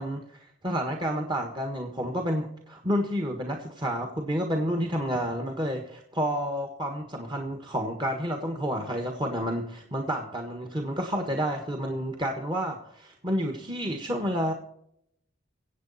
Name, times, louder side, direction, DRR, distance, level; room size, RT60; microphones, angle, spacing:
voice 1, 0.0-14.5, equal, 25° right, 3 dB, 1.5 m, -30 dB
24.0 x 8.3 x 4.2 m, 0.73 s
head